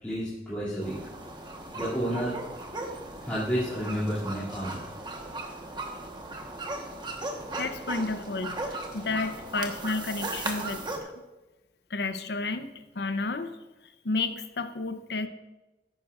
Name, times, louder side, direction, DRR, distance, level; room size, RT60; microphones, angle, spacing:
voice 1, 0.0-1.0 1.7-2.3 3.3-4.8, equal, 10° left, -12 dB, 2.5 m, -30 dB
sound 1, 0.8-11.0, right 2 dB, 25° right, 1.1 m, -37 dB
voice 2, 7.5-8.6 8.9-11.1 11.9-12.7 12.9-13.5 14.0-15.3, left 3 dB, 65° left, 9 dB, 0.7 m, -31 dB
13.5 x 10.5 x 2.4 m, 1.1 s
head